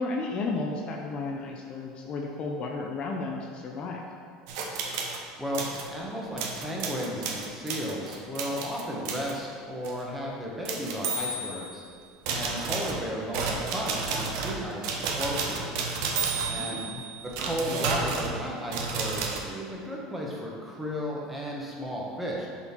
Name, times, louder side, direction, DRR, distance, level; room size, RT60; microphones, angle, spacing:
voice 1, 0.0-4.0 16.5-17.0, left 3 dB, 40° left, 0 dB, 0.7 m, -33 dB
sound 1, 4.5-5.2 5.5-5.9 6.4-9.4 9.8-10.0 10.6-11.8 12.3-19.4, right 4 dB, 75° right, 0.8 m, -32 dB
voice 2, 5.4-11.8 12.3-15.8 16.4-16.8 17.4-22.5, equal, 5° right, -4 dB, 1.5 m, -34 dB
6.7 x 4.2 x 4.5 m, 2.1 s
supercardioid pair, 110°, 2 cm